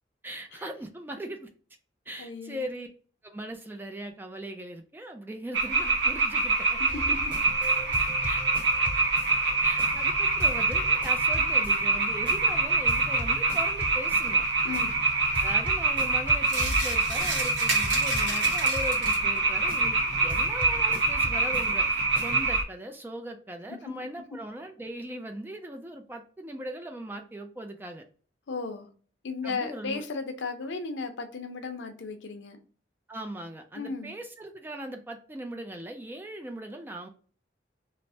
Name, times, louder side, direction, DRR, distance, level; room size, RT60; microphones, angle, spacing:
voice 1, 0.2-1.5 2.1-2.9 3.2-6.8 8.2-8.4 9.6-14.4 15.4-28.0 29.4-30.0 33.1-37.1, right 1 dB, 10° right, 5 dB, 0.3 m, -39 dB
voice 2, 2.2-2.7 6.8-7.2 8.2-8.3 14.6-15.0 23.7-23.8 28.5-28.9 29.2-32.6 33.7-34.1, left 4 dB, 75° left, 6 dB, 0.6 m, -35 dB
sound 1, 5.5-22.6, right 3 dB, 60° right, 0.7 m, -25 dB
sound 2, 6.9-22.5, equal, 10° left, 1.2 m, -39 dB
sound 3, 16.4-19.4, right 2 dB, 85° right, 1.1 m, -33 dB
3.2 x 2.0 x 2.6 m, 0.41 s
head